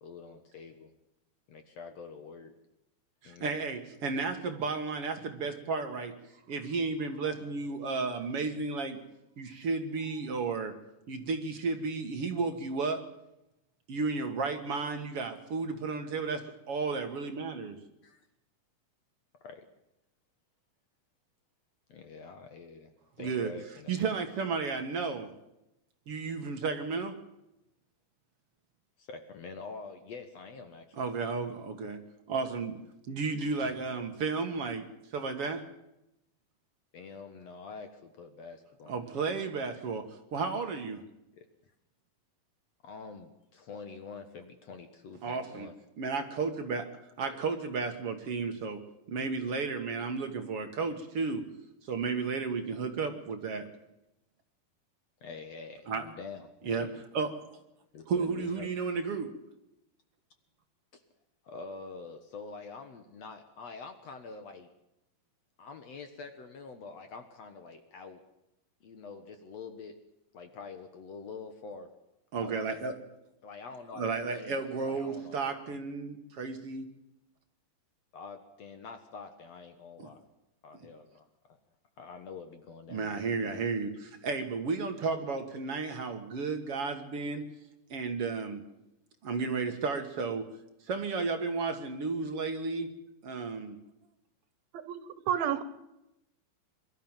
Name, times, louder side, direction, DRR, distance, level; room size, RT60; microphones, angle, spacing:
voice 1, 0.0-0.9 1.5-2.5 3.2-3.6 18.0-18.2 19.4-19.7 21.9-22.9 23.2-24.1 29.0-30.9 36.9-39.0 41.4-41.5 42.8-45.7 55.2-56.9 57.9-58.7 60.9-61.0 61.4-64.7 65.6-68.2 68.8-70.0 70.3-71.9 72.4-72.6 73.4-75.4 75.7-75.8 78.1-80.2 80.6-81.3 82.0-83.6, left 4 dB, 55° left, 2.1 m, -46 dB
voice 2, 3.2-6.1 6.5-9.0 9.4-10.7 11.1-13.0 13.9-17.8 23.2-23.5 23.9-25.3 26.1-27.1 31.0-32.0 32.3-32.8 33.1-35.6 38.9-40.1 40.3-41.0 45.2-45.7 46.0-46.9 47.2-48.8 49.1-51.4 51.9-53.7 55.9-56.1 56.6-56.9 57.1-57.3 58.1-59.3 72.3-72.9 73.9-76.9 80.0-80.1 80.7-80.9 82.9-87.4 87.9-88.6 89.2-90.4 90.9-92.9 93.2-93.8, right 4 dB, 50° right, 2.1 m, -33 dB
voice 3, 94.8-95.6, right 9 dB, 80° right, 3.0 m, -30 dB
23.0 x 13.0 x 9.0 m
omnidirectional pair, 4.2 m